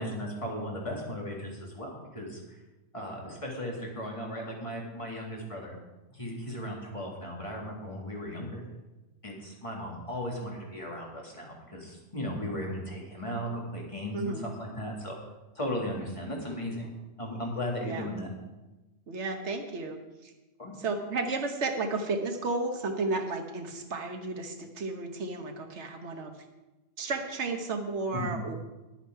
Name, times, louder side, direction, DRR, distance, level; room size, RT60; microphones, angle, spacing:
voice 1, 0.0-2.6 2.9-5.8 6.1-8.6 9.2-15.2 15.6-16.9 17.2-18.3 20.6-20.8 28.1-28.3, equal, 25° left, -2 dB, 2.1 m, -36 dB
voice 2, 14.1-14.5 17.9-18.1 19.1-20.3 20.8-26.3 27.0-28.5, right 3 dB, 65° right, 5 dB, 1.4 m, -33 dB
10.0 x 9.0 x 4.7 m, 1.1 s
omnidirectional pair, 1.3 m